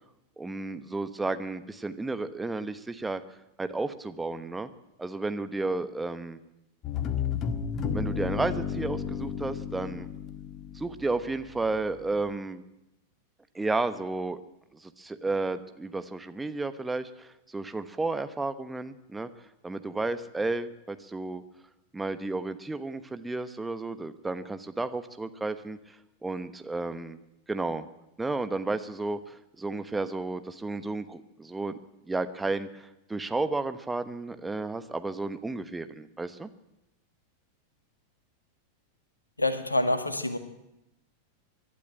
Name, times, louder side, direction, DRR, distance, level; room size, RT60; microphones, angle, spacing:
voice 1, 0.4-3.2 3.6-4.7 5.0-6.4 7.9-10.1 10.7-12.6 13.5-14.4 14.7-19.3 19.6-21.4 21.9-26.0 26.2-27.2 27.5-27.8 28.2-31.8 32.1-36.5, right 3 dB, 10° right, 10 dB, 1.1 m, -32 dB
sound 1, 6.8-11.7, left 7 dB, 30° left, 1.6 m, -33 dB
voice 2, 39.4-40.4, left 2 dB, 85° left, 9 dB, 1.9 m, -26 dB
23.5 x 12.0 x 9.0 m, 0.89 s
figure-of-eight pair, 90°, 0 cm